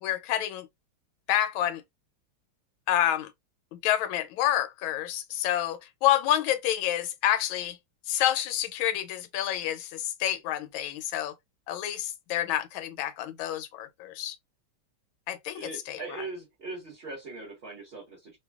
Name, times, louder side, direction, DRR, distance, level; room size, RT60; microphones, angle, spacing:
voice 1, 0.0-0.7 1.3-1.8 2.9-3.3 3.8-7.8 8.1-11.3 11.7-14.4 15.3-16.0, left 12 dB, 80° left, 1.4 m, -28 dB
voice 2, 15.5-18.4, right 3 dB, 40° right, 1.0 m, -40 dB
3.2 x 2.3 x 2.2 m
omnidirectional pair, 2.3 m